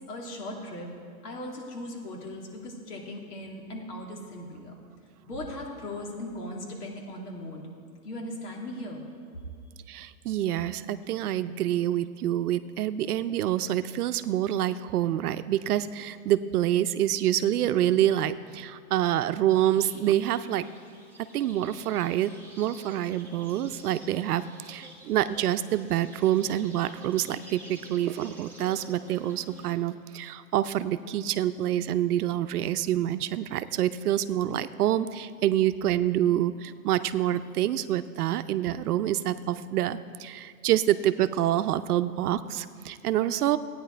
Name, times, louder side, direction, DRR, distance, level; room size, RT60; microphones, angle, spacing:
voice 1, 0.1-0.9 1.2-4.8 5.3-7.7 8.0-9.0, left 1 dB, 90° left, 0 dB, 2.7 m, -38 dB
voice 2, 9.9-20.7 21.3-43.6, right 12 dB, 75° right, 12 dB, 0.7 m, -27 dB
sound 1, 19.5-29.8, right 1 dB, 5° left, 0.8 m, -50 dB
15.0 x 9.4 x 4.5 m, 2.3 s
supercardioid pair, 160°, 45 cm